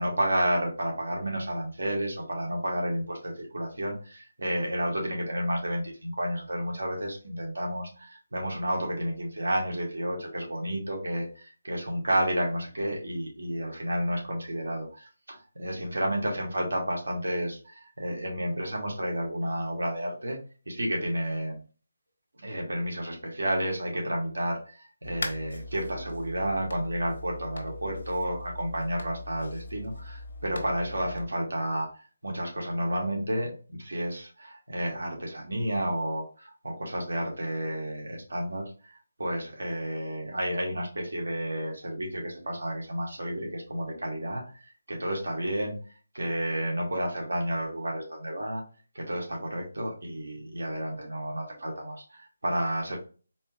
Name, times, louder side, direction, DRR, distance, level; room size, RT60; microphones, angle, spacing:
voice 1, 0.0-20.4 20.7-21.6 22.4-38.9 39.2-44.4 44.9-45.8 46.1-48.6 49.0-53.0, equal, 80° right, -1 dB, 1.7 m, -31 dB
sound 1, 25.0-31.3, left 2 dB, 70° left, 1.0 m, -40 dB
4.1 x 3.0 x 2.3 m, 0.36 s
figure-of-eight pair, 160°, 0 cm